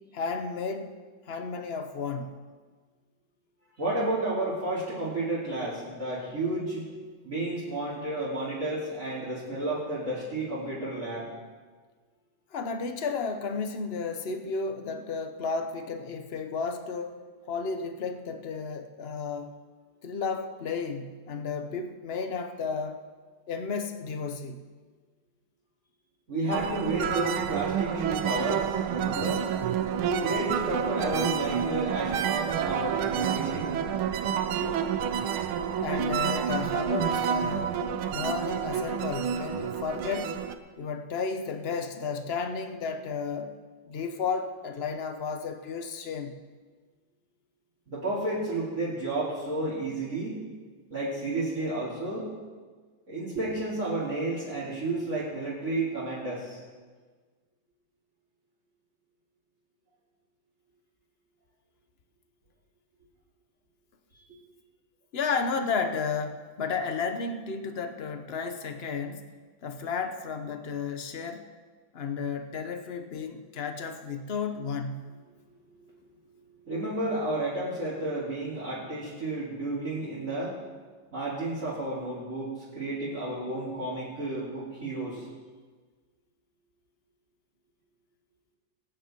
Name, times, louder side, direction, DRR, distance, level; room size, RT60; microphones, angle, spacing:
voice 1, 0.1-1.0 1.3-2.4 12.5-19.6 20.0-23.0 23.5-24.6 35.8-37.8 38.1-40.4 40.8-43.6 43.9-46.4 65.1-69.3 69.6-71.5 71.9-75.1, left 5 dB, 50° left, 7 dB, 0.7 m, -33 dB
voice 2, 3.8-6.8 7.2-11.3 26.3-29.5 30.2-33.8 47.9-50.4 50.9-52.3 53.1-56.6 76.7-80.6 81.1-85.2, right 2 dB, 35° right, -8 dB, 3.2 m, -31 dB
sound 1, 26.5-40.5, right 8 dB, 85° right, 1.6 m, -29 dB
22.5 x 9.0 x 4.4 m, 1.5 s
omnidirectional pair, 2.3 m